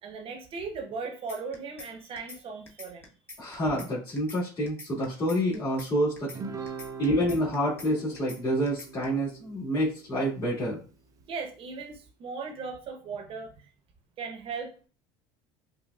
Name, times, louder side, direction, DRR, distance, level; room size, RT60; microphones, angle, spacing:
voice 1, 0.0-3.2 6.6-6.7 11.3-13.7 14.2-14.7, right 4 dB, 50° right, 5 dB, 0.9 m, -38 dB
sound 1, 1.3-1.9 2.2-2.4 2.7-3.9 4.2-4.4 4.7-5.9 6.2-6.4 6.7-7.9 8.2-8.4 8.7-9.0, left 2 dB, 20° left, 1.0 m, -45 dB
voice 2, 3.4-6.4 7.0-10.8, equal, 35° left, -9 dB, 1.8 m, -28 dB
Guitar, 6.3-11.0, right 5 dB, 30° right, 0.5 m, -43 dB
5.4 x 2.2 x 2.3 m, 0.38 s
supercardioid pair, 90°, 12 cm